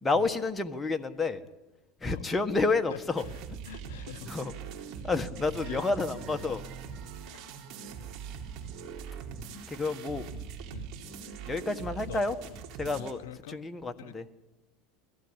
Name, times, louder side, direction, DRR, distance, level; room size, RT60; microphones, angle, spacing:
voice 1, 0.0-1.4 2.0-3.2 4.3-4.5 5.0-6.6 9.7-10.2 11.5-12.4 12.8-13.2 13.5-14.2, left 3 dB, 15° left, 1.5 m, -29 dB
sound 1, 3.2-13.1, right 6 dB, 50° right, 3.6 m, -42 dB
voice 2, 3.7-4.3 5.7-5.9 10.3-10.9 12.1-12.2 12.9-13.6 14.0-14.1, left 13 dB, 90° left, 0.7 m, -44 dB
22.0 x 15.5 x 9.9 m
supercardioid pair, 125°, 0 cm